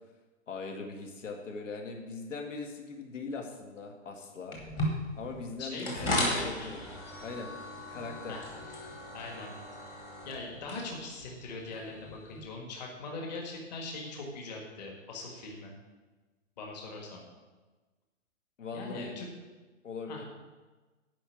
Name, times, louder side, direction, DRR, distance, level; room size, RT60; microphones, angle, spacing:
voice 1, 0.5-4.6 5.2-6.8 7.2-7.5 7.9-8.4 18.6-19.2 19.8-20.2, left 4 dB, 75° left, 3 dB, 2.0 m, -40 dB
sound 1, 4.5-12.4, left 1 dB, 10° left, 1.2 m, -37 dB
voice 2, 5.6-6.7 8.3-8.5 9.1-9.5 9.8-10.0 10.3-15.7 16.6-17.2 18.7-19.3 20.1-20.2, left 3 dB, 35° left, 0 dB, 1.9 m, -41 dB
10.0 x 5.5 x 8.5 m, 1.3 s
hypercardioid pair, 175°, 38 cm